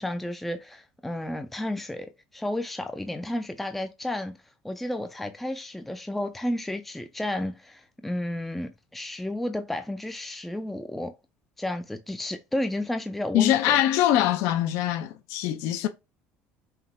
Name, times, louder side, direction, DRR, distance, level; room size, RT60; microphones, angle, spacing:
voice 1, 0.0-4.4 4.6-11.1 11.6-13.8, left 1 dB, 5° left, 0.3 m, -32 dB
voice 2, 13.3-15.9, left 12 dB, 70° left, 0.5 m, -23 dB
5.6 x 2.2 x 3.5 m
cardioid pair, 155°, 5 cm